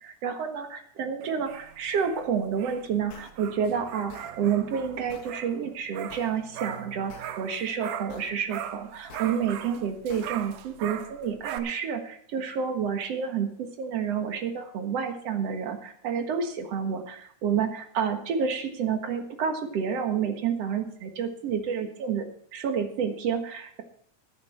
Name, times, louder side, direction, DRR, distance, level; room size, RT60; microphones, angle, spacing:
voice 1, 0.0-22.2 22.5-23.8, right 7 dB, 60° right, 5 dB, 2.4 m, -29 dB
sound 1, 1.2-8.2 8.5-11.6, right 10 dB, 90° right, 2.4 m, -40 dB
sound 2, 3.1-3.3 4.1-4.3 5.1-5.3 6.1-6.3 7.1-7.3 8.1-8.3 9.1-9.3 10.1-10.3, left 6 dB, 55° left, 1.9 m, -47 dB
15.0 x 10.0 x 4.3 m, 0.62 s
omnidirectional pair, 3.5 m